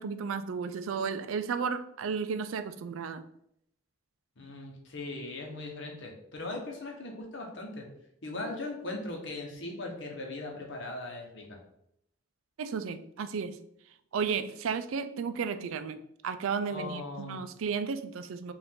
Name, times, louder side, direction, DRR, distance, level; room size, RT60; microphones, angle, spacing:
voice 1, 0.0-3.2 12.6-13.6 14.1-18.5, right 6 dB, 75° right, 10 dB, 0.4 m, -33 dB
voice 2, 4.4-7.8 8.2-11.6 16.7-17.4, left 2 dB, 60° left, 1 dB, 1.0 m, -39 dB
4.7 x 2.6 x 3.6 m, 0.74 s
head